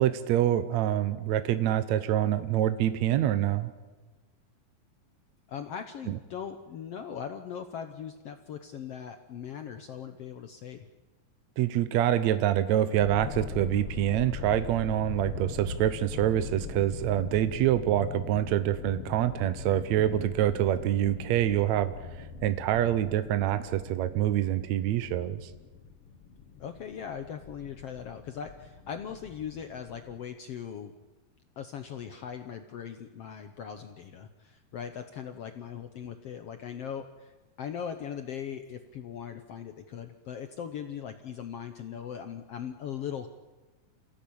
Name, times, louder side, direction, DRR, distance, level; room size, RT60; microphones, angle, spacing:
voice 1, 0.0-3.7 11.6-25.5, right 12 dB, 75° right, 11 dB, 1.7 m, -26 dB
voice 2, 5.5-10.9 26.6-30.9 31.6-43.3, left 8 dB, 80° left, 7 dB, 1.3 m, -39 dB
sound 1, 13.0-30.2, left 5 dB, 50° left, 2.0 m, -41 dB
28.0 x 16.5 x 8.7 m, 1.2 s
omnidirectional pair, 4.2 m